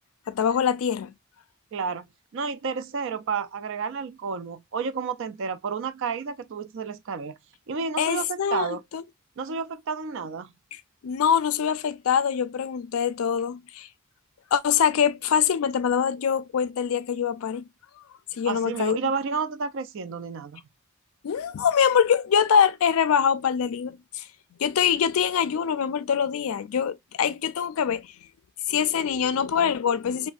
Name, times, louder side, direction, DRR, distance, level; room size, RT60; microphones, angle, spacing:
voice 1, 0.3-1.1 8.0-8.7 8.9-9.0 10.7-13.9 14.5-17.7 18.3-19.0 21.2-24.3 24.6-28.1 28.7-30.3, left 7 dB, 75° left, 0.4 m, -24 dB
voice 2, 1.7-2.1 2.3-7.3 7.7-8.8 9.4-10.5 18.5-20.6, right 5 dB, 60° right, 0.4 m, -31 dB
3.1 x 2.1 x 2.4 m
head